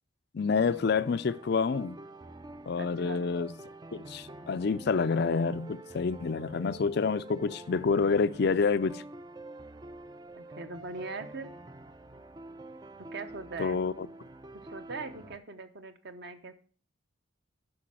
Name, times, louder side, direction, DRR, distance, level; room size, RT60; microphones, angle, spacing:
voice 1, 0.3-2.0 2.7-3.5 3.9-9.0 13.6-14.1, left 5 dB, 50° left, 0.4 m, -28 dB
sound 1, 0.6-15.4, right 2 dB, 20° right, 0.4 m, -47 dB
voice 2, 2.8-3.2 10.3-11.5 13.1-13.8 14.5-16.5, right 3 dB, 55° right, 0.9 m, -41 dB
9.9 x 5.9 x 6.2 m
head